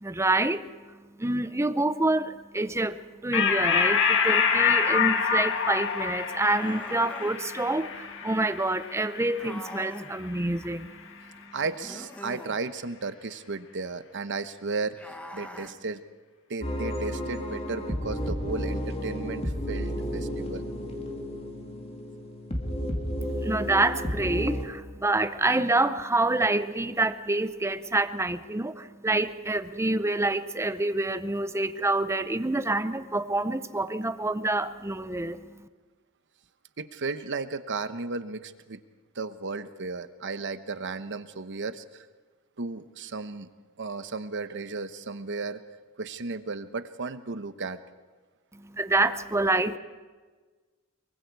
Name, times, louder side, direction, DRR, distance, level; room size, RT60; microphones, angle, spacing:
voice 1, 0.0-0.6 1.2-10.9 23.4-35.7 48.5-49.8, right 2 dB, 15° right, 12 dB, 0.7 m, -27 dB
sound 1, 3.3-10.2, left 6 dB, 60° left, 1.7 m, -26 dB
sound 2, 6.4-7.4 9.4-10.1 11.8-12.6 14.9-15.7, equal, 5° left, 1.4 m, -42 dB
voice 2, 11.5-15.0 15.3-16.0 16.5-20.6 36.8-38.8 39.1-42.1 42.6-43.5 43.8-45.6 46.0-47.8, right 4 dB, 60° right, 11 dB, 1.0 m, -34 dB
sound 3, 16.6-24.7, equal, 30° left, 2.3 m, -32 dB
23.5 x 23.0 x 4.7 m, 1.4 s
head